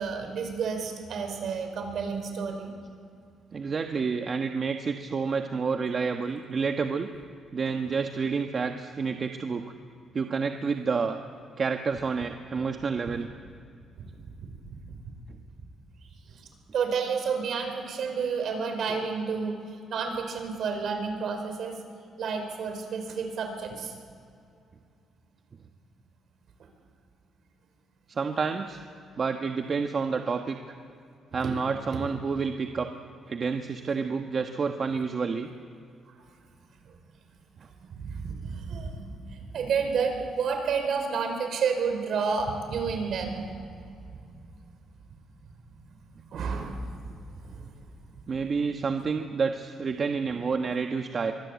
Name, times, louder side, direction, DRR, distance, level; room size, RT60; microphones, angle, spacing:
voice 1, 0.0-2.7 14.0-14.1 14.4-14.8 16.7-19.6 19.9-21.8 22.2-23.9 31.4-31.5 31.9-32.0 37.8-43.4 44.1-44.2 46.3-47.7, right 5 dB, 65° right, 5 dB, 5.2 m, -30 dB
voice 2, 3.5-7.1 7.5-9.7 10.1-11.2 11.6-13.3 28.1-28.8 29.2-30.7 31.3-32.9 33.3-35.5 48.3-51.3, right 5 dB, 45° right, 5 dB, 1.3 m, -29 dB
24.0 x 19.5 x 8.4 m, 2.4 s
cardioid pair, 90°, 0 cm